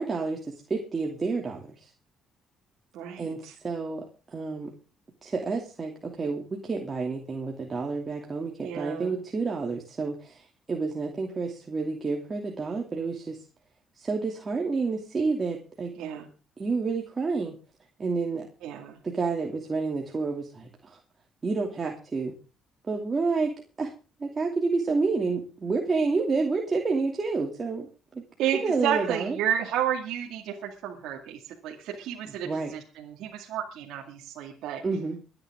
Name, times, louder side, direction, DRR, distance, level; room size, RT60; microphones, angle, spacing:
voice 1, 0.0-1.9 3.2-4.0 4.3-4.7 5.2-13.4 14.0-15.9 16.6-17.5 18.0-18.5 19.0-21.0 21.4-22.3 22.9-23.5 23.8-23.9 24.2-27.9 28.1-28.2 28.5-29.4 32.2-32.7 34.8-35.2, right 4 dB, 30° right, 1 dB, 2.8 m, -29 dB
voice 2, 2.9-3.5 8.6-9.2 16.0-16.3 18.6-19.0 28.4-34.8, right 10 dB, 80° right, 0 dB, 2.2 m, -32 dB
24.0 x 9.8 x 3.7 m, 0.34 s
cardioid pair, 90°, 0 cm